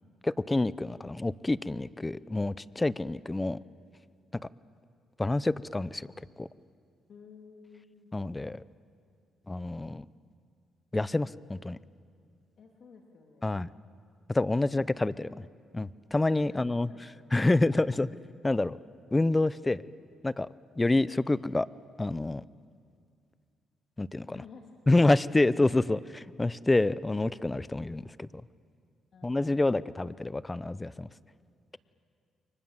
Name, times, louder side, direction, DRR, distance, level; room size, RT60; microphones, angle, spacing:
voice 1, 0.2-3.6 5.2-6.1 6.4-6.5 8.1-8.6 9.5-10.0 10.9-11.8 13.4-13.7 14.3-15.3 15.7-16.9 17.3-18.1 18.4-18.8 19.1-19.8 20.2-20.5 20.8-21.7 22.0-22.4 24.0-24.4 24.9-28.3 29.2-31.1, left 2 dB, 15° left, 18 dB, 0.6 m, -27 dB
voice 2, 7.1-8.1 12.6-13.6 15.1-15.5 16.5-17.1 24.3-25.1 29.1-29.8, left 5 dB, 60° left, 1 dB, 2.7 m, -52 dB
29.5 x 24.0 x 7.4 m, 2.3 s
cardioid pair, 90°, 0 cm